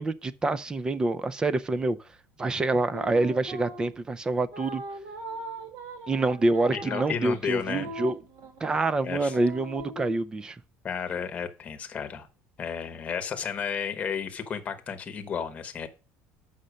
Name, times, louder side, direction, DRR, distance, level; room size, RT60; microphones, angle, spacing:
voice 1, 0.0-2.0 2.4-4.8 6.1-8.1 8.6-10.6, right 2 dB, 15° right, 0.4 m, -26 dB
sound 1, 2.9-4.0 4.5-8.8 9.3-10.1, right 2 dB, 50° right, 1.7 m, -40 dB
voice 2, 6.7-7.9 9.0-9.3 10.8-12.3 12.6-15.9, left 7 dB, 25° left, 1.0 m, -32 dB
6.4 x 5.6 x 6.3 m
cardioid pair, 155°, 5 cm